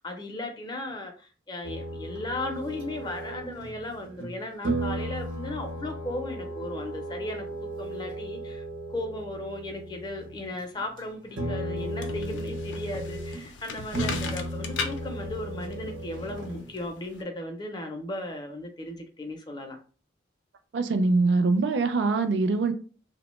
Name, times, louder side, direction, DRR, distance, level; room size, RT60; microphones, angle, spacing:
voice 1, 0.0-7.4 7.8-8.6 8.9-19.8, left 1 dB, 25° left, 0.4 m, -36 dB
sound 1, 1.6-4.3 4.6-10.5 10.8-11.0 11.3-13.5 13.9-16.9, right 1 dB, 85° right, 0.9 m, -35 dB
sound 2, 11.8-17.2, left 5 dB, 85° left, 0.4 m, -38 dB
voice 2, 20.7-22.7, right 3 dB, 70° right, 0.3 m, -23 dB
2.8 x 2.1 x 3.0 m
head